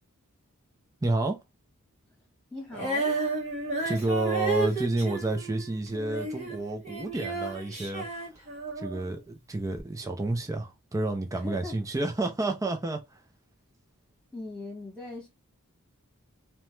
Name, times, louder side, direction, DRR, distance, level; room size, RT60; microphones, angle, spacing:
voice 1, 1.0-1.4 3.8-8.1 8.8-13.0, right 2 dB, 15° right, 0.4 m, -30 dB
voice 2, 2.5-3.2 11.3-11.8 14.3-15.3, left 3 dB, 5° left, 1.5 m, -40 dB
Female singing, 2.7-9.1 9.8-9.9, right 2 dB, 30° right, 1.1 m, -32 dB
2.8 x 2.1 x 3.0 m
head